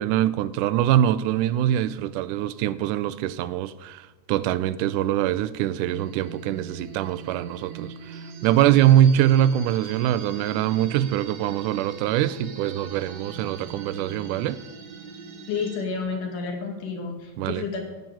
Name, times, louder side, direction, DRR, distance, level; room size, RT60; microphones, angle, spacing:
voice 1, 0.0-14.6 17.4-17.6, right 11 dB, 80° right, 2.0 m, -23 dB
sound 1, 5.9-15.8, right 6 dB, 65° right, 2.5 m, -42 dB
sound 2, 9.8-16.0, equal, 40° left, 3.1 m, -46 dB
voice 2, 15.5-17.8, left 5 dB, 75° left, 3.6 m, -30 dB
13.5 x 5.9 x 9.1 m
omnidirectional pair, 3.7 m